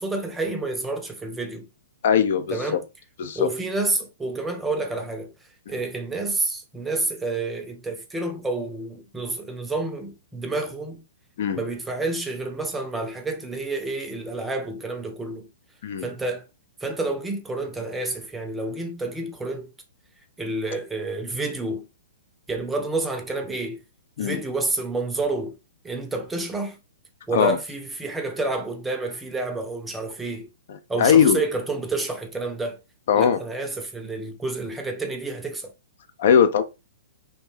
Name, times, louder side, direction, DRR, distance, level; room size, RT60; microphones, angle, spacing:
voice 1, 0.0-1.7 2.5-2.8 3.4-5.3 5.7-11.0 11.6-15.5 16.0-16.4 16.8-19.7 20.4-21.9 22.5-23.8 24.2-25.6 25.8-26.8 27.3-30.5 30.9-32.8 33.1-35.7, right 2 dB, 10° right, 0.5 m, -29 dB
voice 2, 2.0-2.8 3.2-3.5 5.7-5.8 11.4-11.6 15.8-16.1 24.2-24.4 27.3-27.6 30.7-31.4 33.1-33.4 36.2-36.6, left 8 dB, 55° left, 0.3 m, -20 dB
2.5 x 2.1 x 3.1 m
figure-of-eight pair, 115°, 0 cm